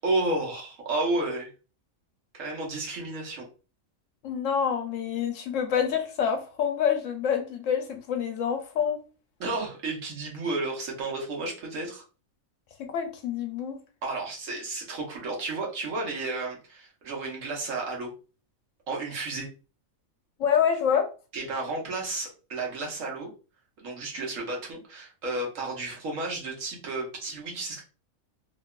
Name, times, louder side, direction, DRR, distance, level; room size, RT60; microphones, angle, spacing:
voice 1, 0.0-1.5 2.3-3.5 9.4-12.0 14.0-18.1 18.9-19.5 21.3-23.3 23.8-27.8, right 2 dB, 70° right, -1 dB, 1.2 m, -32 dB
voice 2, 4.2-9.0 12.8-13.8 20.4-21.1, left 8 dB, 70° left, 4 dB, 0.9 m, -27 dB
2.8 x 2.3 x 2.2 m, 0.34 s
omnidirectional pair, 1.4 m